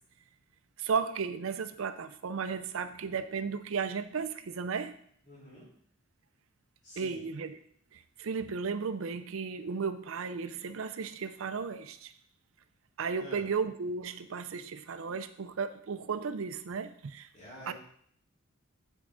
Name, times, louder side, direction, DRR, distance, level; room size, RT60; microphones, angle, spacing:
voice 1, 0.8-5.0 7.0-7.5 7.9-12.1 13.0-17.3 17.7-17.8, right 5 dB, 65° right, 11 dB, 0.5 m, -34 dB
voice 2, 5.2-5.7 6.8-7.2 13.2-13.5 17.3-17.7, equal, 35° left, -4 dB, 2.9 m, -48 dB
8.4 x 4.6 x 4.9 m, 0.62 s
head